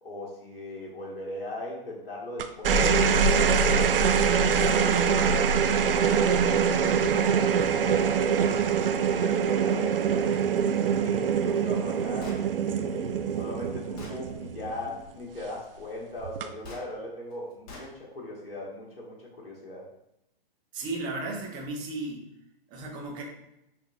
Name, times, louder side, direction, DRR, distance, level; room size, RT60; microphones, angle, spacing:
voice 1, 0.0-8.6 9.2-19.9, left 1 dB, 75° left, -4 dB, 1.3 m, -39 dB
sound 1, 2.4-15.0 16.2-16.7, right 6 dB, 70° right, 0.4 m, -24 dB
Gunshot gunfire, 12.2-12.5 13.4-13.5 14.0-14.2 16.6-16.9 17.7-17.9, left 2 dB, 40° left, 0.9 m, -43 dB
voice 2, 20.7-22.2 22.7-23.2, right 2 dB, 15° right, -1 dB, 0.6 m, -34 dB
6.1 x 2.6 x 2.3 m, 0.83 s
hypercardioid pair, 135°, 29 cm